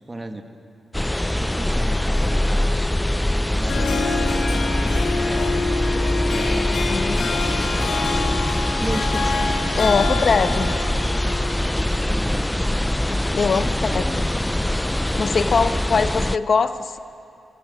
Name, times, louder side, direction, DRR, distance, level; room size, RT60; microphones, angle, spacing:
voice 1, 0.1-0.4 1.3-2.7 3.5-5.8 6.3-7.1 7.8-8.3 8.7-11.5 12.0-12.6 13.3-14.3 15.5-16.1, right 2 dB, 20° right, 6 dB, 1.7 m, -35 dB
sound 1, 0.9-16.4, left 1 dB, 10° left, 0.4 m, -23 dB
Harp, 3.5-12.2, left 4 dB, 80° left, 2.5 m, -27 dB
voice 2, 6.7-7.3 9.8-10.7 13.1-14.2 15.2-17.0, left 5 dB, 55° left, 10 dB, 1.0 m, -22 dB
25.0 x 18.0 x 8.1 m, 2.6 s
cardioid pair, 100°, 0 cm